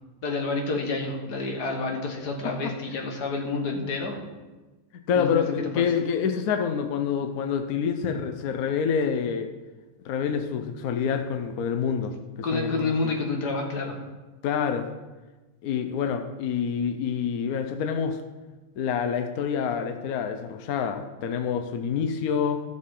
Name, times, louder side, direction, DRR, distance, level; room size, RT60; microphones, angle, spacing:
voice 1, 0.2-4.2 5.2-5.4 5.8-6.0 12.4-14.0, left 3 dB, 50° left, 2 dB, 1.8 m, -29 dB
voice 2, 5.1-9.5 10.0-12.1 12.5-13.1 14.4-14.9 15.6-18.2 18.8-22.6, left 7 dB, 75° left, 6 dB, 0.8 m, -27 dB
15.0 x 6.4 x 3.8 m, 1.2 s
omnidirectional pair, 2.4 m